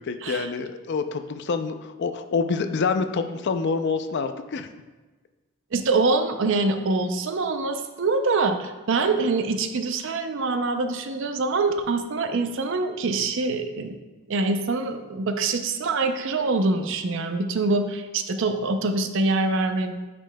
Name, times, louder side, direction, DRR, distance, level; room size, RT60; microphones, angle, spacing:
voice 1, 0.0-4.7, left 4 dB, 50° left, 9 dB, 0.4 m, -27 dB
voice 2, 5.7-14.0 14.3-19.9, right 3 dB, 55° right, 7 dB, 0.5 m, -24 dB
9.6 x 5.2 x 2.2 m, 1.2 s
head